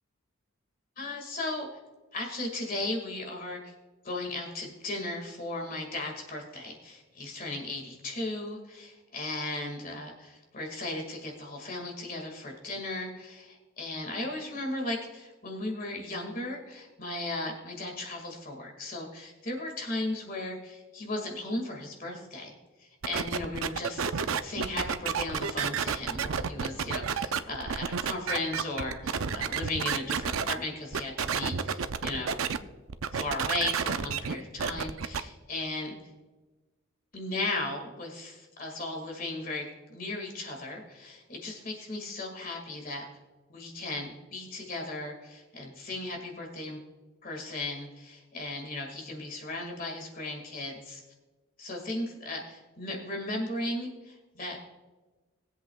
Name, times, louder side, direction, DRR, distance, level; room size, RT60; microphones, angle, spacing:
voice 1, 1.0-1.7 2.1-3.7 4.0-22.5 22.8-32.4 33.1-36.0 37.1-43.0 43.5-46.8 47.2-51.0 51.6-54.6, left 2 dB, 45° left, 1 dB, 2.1 m, -36 dB
sound 1, 23.0-30.5 30.9-32.6 32.9-35.2, right 6 dB, 80° right, 0.6 m, -30 dB
20.5 x 8.0 x 2.4 m, 1.2 s
head